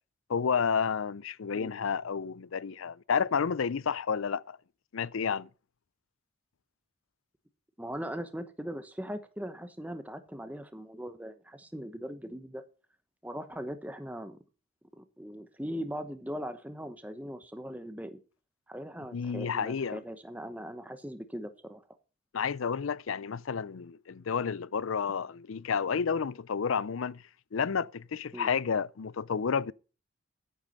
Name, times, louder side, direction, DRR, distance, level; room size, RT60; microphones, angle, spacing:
voice 1, 0.3-4.6 4.9-5.5 19.1-20.0 22.3-27.2 27.5-29.7, left 6 dB, 75° left, 0.5 m, -30 dB
voice 2, 7.8-12.6 13.2-14.4 15.0-18.2 18.7-21.8 28.3-28.5, equal, 5° right, 1.0 m, -40 dB
10.5 x 9.4 x 5.4 m
head